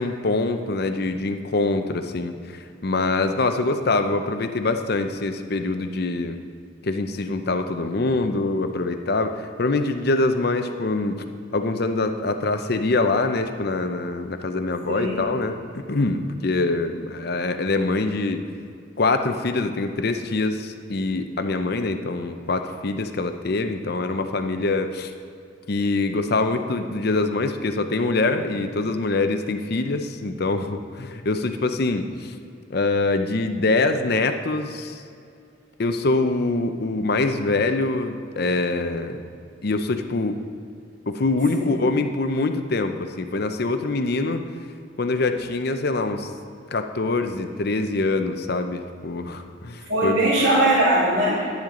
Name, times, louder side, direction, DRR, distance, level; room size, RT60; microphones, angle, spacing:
voice 1, 0.0-6.4 6.8-11.2 11.5-18.4 19.0-25.1 25.7-32.3 32.7-35.0 35.8-39.2 39.6-40.4 41.1-44.4 45.0-46.3 46.7-50.1, left 3 dB, 55° left, 8 dB, 0.7 m, -24 dB
voice 2, 14.9-15.2 41.5-41.8 49.9-51.5, right 1 dB, 80° right, -6 dB, 2.4 m, -20 dB
10.5 x 10.5 x 3.8 m, 2.3 s
head